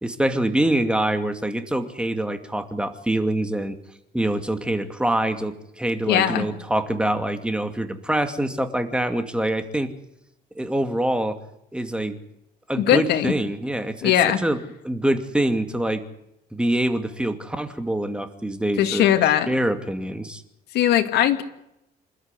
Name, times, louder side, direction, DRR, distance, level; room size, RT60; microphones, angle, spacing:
voice 1, 0.0-3.8 4.1-9.9 10.6-11.4 11.7-12.2 12.7-16.0 16.5-19.0 19.5-20.4, right 1 dB, 5° right, 7 dB, 2.5 m, -25 dB
voice 2, 6.1-6.5 12.8-13.3 14.0-14.4 18.8-19.5 20.7-21.4, left 11 dB, 75° left, 6 dB, 2.7 m, -19 dB
27.5 x 13.0 x 9.9 m, 0.82 s
cardioid pair, 110°, 17 cm